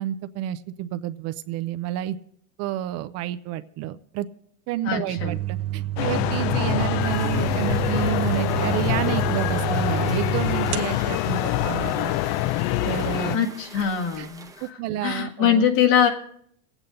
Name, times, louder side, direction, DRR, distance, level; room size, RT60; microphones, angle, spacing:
voice 1, 0.0-2.2 2.6-4.3 4.7-12.1 12.8-13.5 13.7-13.9 14.2-14.3 14.6-15.6, right 12 dB, 40° right, 11 dB, 0.5 m, -30 dB
voice 2, 4.8-5.4 13.3-14.5 15.0-16.1, left 8 dB, 65° left, 1 dB, 2.0 m, -22 dB
sound 1, 5.2-12.2, right 14 dB, 90° right, 1.1 m, -29 dB
sound 2, 6.0-13.4, left 15 dB, 45° left, 0.4 m, -25 dB
sound 3, 7.0-14.7, right 3 dB, 10° right, 0.8 m, -45 dB
25.0 x 8.9 x 3.8 m, 0.67 s
supercardioid pair, 130°, 41 cm